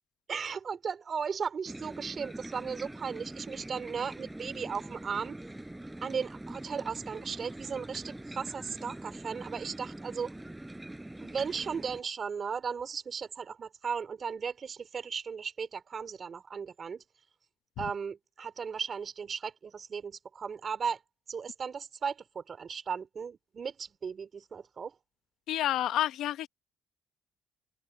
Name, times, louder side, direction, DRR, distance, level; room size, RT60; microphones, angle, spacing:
voice 1, 0.3-5.4 6.0-10.3 11.2-17.0 17.8-21.0 21.3-24.9, right 6 dB, 45° right, 3.6 m, -36 dB
sound 1, 1.7-12.0, right 1 dB, 10° right, 4.4 m, -44 dB
voice 2, 25.5-26.5, left 12 dB, 85° left, 1.0 m, -29 dB
cardioid pair, 90°, 0 cm